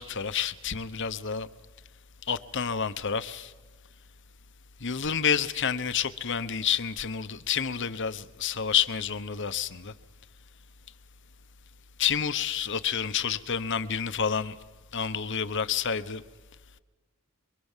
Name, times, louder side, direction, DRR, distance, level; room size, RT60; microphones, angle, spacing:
voice 1, 0.0-1.5 2.3-3.5 4.8-9.9 12.0-14.5 14.9-16.2, left 7 dB, 55° left, 1.1 m, -29 dB
25.5 x 24.0 x 7.4 m
head